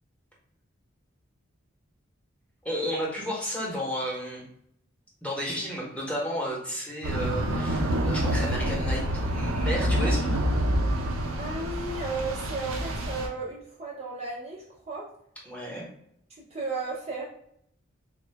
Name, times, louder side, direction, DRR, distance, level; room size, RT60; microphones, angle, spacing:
voice 1, 2.6-4.4 5.2-10.4 15.4-15.9, equal, 5° left, -5 dB, 0.9 m, -32 dB
sound 1, 7.0-13.3, equal, 80° right, 0.6 m, -27 dB
voice 2, 11.4-15.1 16.4-17.2, right 3 dB, 30° right, -4 dB, 0.5 m, -34 dB
3.5 x 2.2 x 3.3 m, 0.72 s
head